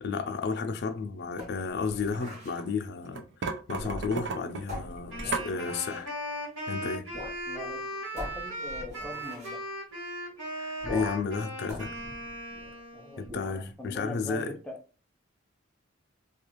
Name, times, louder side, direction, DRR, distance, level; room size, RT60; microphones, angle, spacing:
voice 1, 0.0-6.1 6.7-7.0 10.6-11.9 13.2-14.5, left 5 dB, 60° left, 0.4 m, -33 dB
sound 1, 1.4-2.6 3.7-4.3 4.7-6.1 7.1-7.4 7.7-7.8 8.2-9.6 10.8-11.3 11.7-12.8 13.2-13.6, left 1 dB, 35° right, 0.9 m, -41 dB
sound 2, 1.8-2.7 3.1-5.5, right 4 dB, 60° right, 0.5 m, -35 dB
Wind instrument woodwind instrument, 5.1-13.3, equal, 80° right, 1.6 m, -38 dB
voice 2, 7.5-7.8 8.1-9.6 12.9-14.8, left 2 dB, 5° left, 0.5 m, -42 dB
2.4 x 2.3 x 3.0 m
head